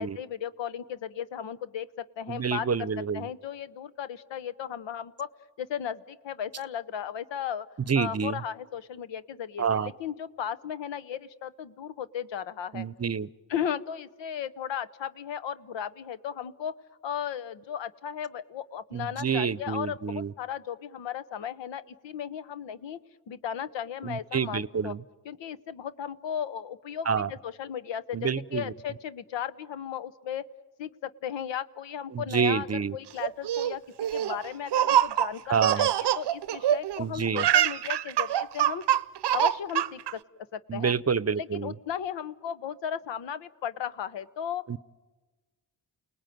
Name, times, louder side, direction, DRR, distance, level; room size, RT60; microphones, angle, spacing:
voice 1, 0.0-2.7 3.1-5.3 5.6-7.7 8.0-12.8 13.5-16.7 17.0-23.0 23.3-24.9 25.2-28.2 28.5-30.4 30.8-32.7 32.9-33.8 34.1-38.8 39.3-40.0 40.5-40.9 41.4-44.6, left 9 dB, 80° left, 14 dB, 1.0 m, -35 dB
voice 2, 2.3-3.3 7.9-8.4 9.6-9.9 12.7-13.3 18.9-20.3 24.0-25.0 27.1-27.3 28.1-28.7 32.1-33.0 35.5-35.9 37.0-37.5 40.7-41.7 44.7-44.8, right 6 dB, 35° right, 20 dB, 0.8 m, -28 dB
Laughter, 33.2-37.0 37.3-40.1, right 11 dB, 70° right, 0.7 m, -25 dB
29.5 x 19.0 x 9.2 m, 1.3 s
supercardioid pair, 50°, 43 cm